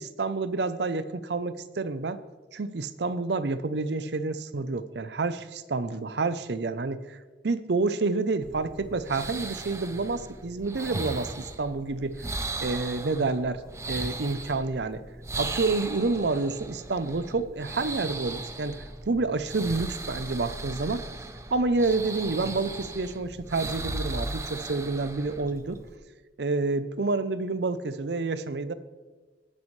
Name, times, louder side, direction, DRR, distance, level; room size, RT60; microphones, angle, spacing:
voice 1, 0.0-2.2 2.5-7.2 7.4-12.3 12.6-13.6 13.9-15.0 15.4-21.0 21.5-25.8 26.4-28.7, right 3 dB, 65° right, 13 dB, 0.6 m, -29 dB
sound 1, 8.4-26.0, right 2 dB, 15° right, 0.6 m, -37 dB
18.0 x 9.5 x 3.2 m, 1.3 s
head